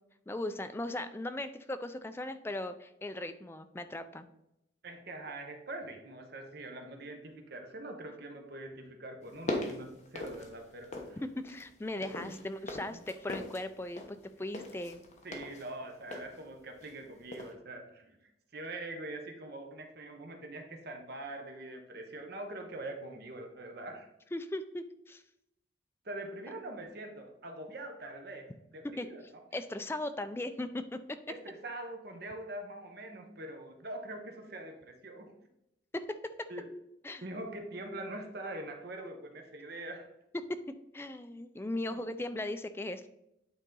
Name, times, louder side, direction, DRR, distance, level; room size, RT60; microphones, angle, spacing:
voice 1, 0.3-4.3 11.2-15.0 24.3-25.2 29.0-29.1 29.5-31.2 35.9-36.5 37.0-37.2 40.5-40.6 40.9-43.1, left 1 dB, 10° left, 9 dB, 0.3 m, -38 dB
voice 2, 4.8-11.2 12.0-12.3 12.9-13.0 15.2-24.1 26.0-29.2 31.3-35.3 36.5-36.7 37.2-40.1 41.9-42.0, right 2 dB, 55° right, 4 dB, 0.9 m, -43 dB
sound 1, 9.2-11.2 11.5-17.0 17.3-17.5, left 1 dB, 35° left, 1.0 m, -41 dB
9.1 x 4.0 x 3.8 m, 0.84 s
head